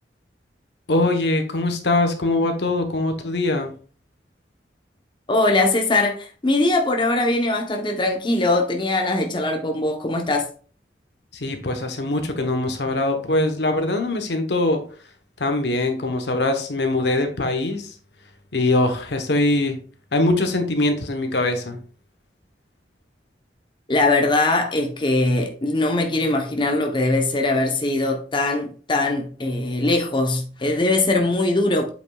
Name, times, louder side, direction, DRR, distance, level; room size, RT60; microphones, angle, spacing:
voice 1, 0.9-3.7 11.3-14.8 15.4-17.9 18.5-19.8 20.1-21.8, left 2 dB, 70° left, 1.1 m, -22 dB
voice 2, 5.3-10.5 23.9-31.9, left 2 dB, 30° left, 0.9 m, -21 dB
7.9 x 5.2 x 2.4 m
head